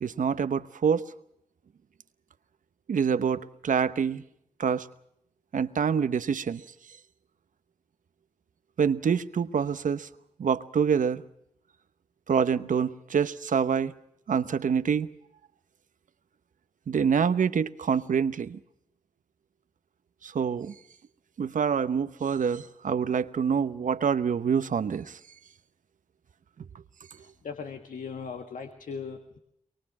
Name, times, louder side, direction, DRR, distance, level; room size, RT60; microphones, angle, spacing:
voice 1, 0.0-1.0 2.9-4.2 4.6-4.9 5.5-6.6 8.8-10.1 10.4-11.2 12.3-13.9 14.3-15.1 16.9-18.6 20.2-20.7 21.4-25.2, right 7 dB, 75° right, 1.0 m, -26 dB
voice 2, 27.2-29.4, left 5 dB, 80° left, 1.6 m, -39 dB
23.5 x 23.5 x 6.2 m
cardioid pair, 40°, 13 cm